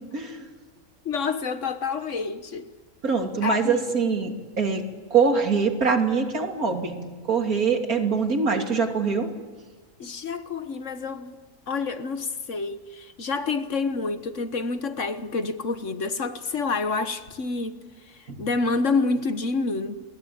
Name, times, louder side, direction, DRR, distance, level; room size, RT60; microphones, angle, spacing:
voice 1, 0.1-0.4 3.0-4.8 5.1-9.3, right 5 dB, 75° right, 3.4 m, -23 dB
voice 2, 1.0-2.7 3.4-3.8 10.0-11.4 11.7-17.8 18.1-20.0, left 4 dB, 55° left, 1.6 m, -28 dB
29.5 x 22.5 x 8.8 m
omnidirectional pair, 1.6 m